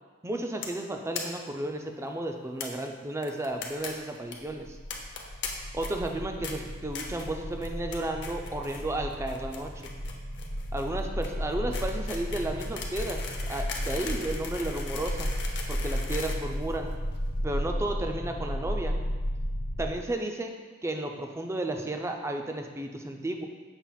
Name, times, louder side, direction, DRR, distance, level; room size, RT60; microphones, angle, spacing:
voice 1, 0.2-4.8 5.7-9.9 10.7-15.3 15.7-16.9 17.4-19.0 19.8-20.6 20.8-23.5, right 1 dB, 15° right, 4 dB, 0.4 m, -33 dB
sound 1, 0.6-0.8 1.1-1.2 1.5-1.6 1.8-1.9 2.6-2.7 3.2-4.3 4.9-5.5 5.8-6.1 6.4-6.5 6.9-7.3 7.6-8.8 9.1-17.2, left 5 dB, 60° left, 0.7 m, -39 dB
sound 2, 4.5-19.9, equal, 85° left, 1.1 m, -34 dB
7.2 x 2.5 x 5.6 m, 1.4 s
head